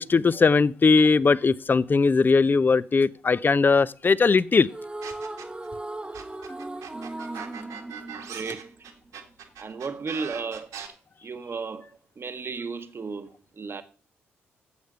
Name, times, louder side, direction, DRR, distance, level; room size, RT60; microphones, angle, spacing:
voice 1, 0.0-4.7, left 4 dB, 30° left, 0.5 m, -20 dB
sound 1, 4.7-9.1, right 2 dB, 15° right, 0.9 m, -37 dB
sound 2, 5.0-5.7 6.1-10.9, right 8 dB, 70° right, 1.8 m, -40 dB
voice 2, 8.3-8.7 9.6-10.7 11.2-11.9 12.2-13.8, right 4 dB, 40° right, 1.1 m, -34 dB
8.2 x 7.8 x 6.8 m
hypercardioid pair, 40°, 6 cm